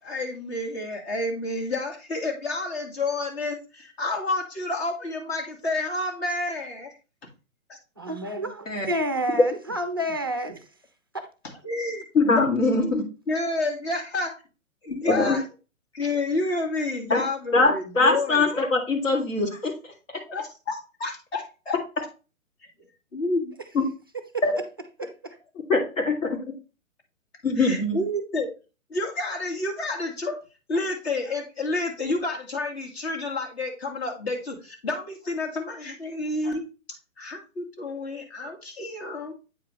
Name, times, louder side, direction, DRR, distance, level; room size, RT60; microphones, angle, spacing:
voice 1, 0.0-6.9 7.7-7.8 11.6-14.3 14.8-15.4 15.9-18.5 20.3-22.1 22.8-23.6 27.6-28.5 28.9-30.4 30.7-36.6 36.9-39.3, left 2 dB, 50° left, 2.2 m, -30 dB
voice 2, 8.0-10.6 11.1-11.3 25.0-25.4, equal, 20° right, 0.3 m, -29 dB
voice 3, 12.1-13.1 15.0-15.4 17.1-17.2 17.5-19.9 23.7-23.8 24.4-24.5 25.7-26.4 27.4-28.0, left 3 dB, 70° left, 2.2 m, -22 dB
8.3 x 4.8 x 3.1 m
figure-of-eight pair, 125°, 40 cm